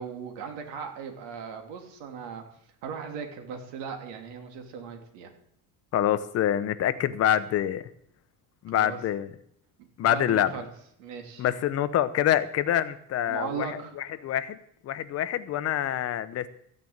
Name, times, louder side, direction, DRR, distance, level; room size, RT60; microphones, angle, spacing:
voice 1, 0.0-2.4 2.8-5.3 8.7-9.0 10.0-10.7 11.0-11.5 13.3-13.9, right 6 dB, 80° right, 4 dB, 2.9 m, -38 dB
voice 2, 5.9-7.9 8.6-9.3 10.0-10.5 11.4-14.6 14.8-16.5, left 11 dB, 40° left, 12 dB, 0.8 m, -26 dB
14.5 x 6.8 x 8.7 m, 0.70 s
cardioid pair, 170°, 40 cm